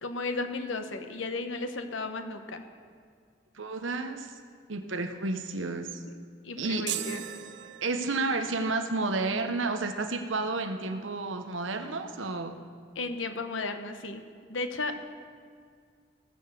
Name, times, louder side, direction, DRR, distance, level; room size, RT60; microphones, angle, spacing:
voice 1, 0.0-2.6 6.4-7.2 12.9-14.2 14.5-15.0, left 3 dB, 85° left, 7 dB, 1.1 m, -34 dB
voice 2, 3.6-4.3 4.7-6.0 6.6-6.9 7.8-12.6, right 3 dB, 80° right, 7 dB, 1.0 m, -31 dB
sound 1, 6.9-8.4, right 10 dB, 60° right, 0.6 m, -37 dB
18.5 x 6.9 x 6.8 m, 2.1 s
head